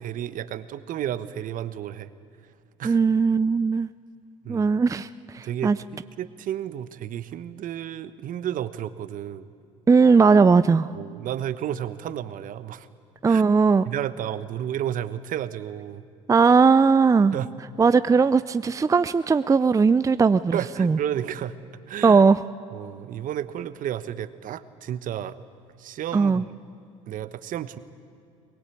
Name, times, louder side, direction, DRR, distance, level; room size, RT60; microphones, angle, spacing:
voice 1, 0.0-2.1 2.8-3.0 4.4-4.7 5.4-5.7 6.2-9.5 10.9-12.9 13.3-13.4 13.9-16.0 17.3-17.5 20.5-21.5 21.9-22.2 22.7-25.4 25.8-26.4 27.1-27.8, right 11 dB, 60° right, 13 dB, 1.1 m, -32 dB
voice 2, 2.8-3.9 4.5-5.1 5.3-5.8 9.9-10.9 13.2-13.9 16.3-17.4 17.8-21.0 22.0-22.4 26.1-26.4, right 5 dB, 20° right, 14 dB, 0.5 m, -18 dB
22.0 x 22.0 x 8.5 m, 2.5 s
hypercardioid pair, 70°, 16 cm